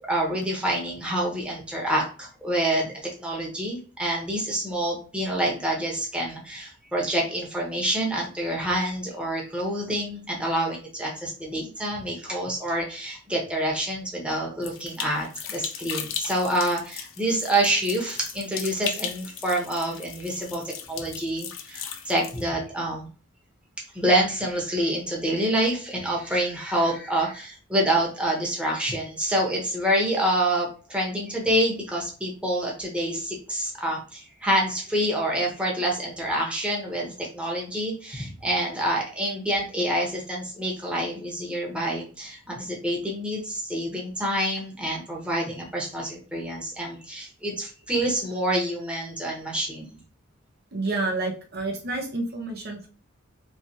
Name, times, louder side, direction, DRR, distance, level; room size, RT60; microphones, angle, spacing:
voice 1, 0.1-20.6 20.9-23.1 23.9-49.9, right 1 dB, 5° right, -2 dB, 1.0 m, -27 dB
sound 1, 14.6-22.4, left 8 dB, 75° left, 0.5 m, -37 dB
voice 2, 50.7-52.9, right 2 dB, 50° right, 1 dB, 0.7 m, -29 dB
3.3 x 3.2 x 2.8 m, 0.37 s
head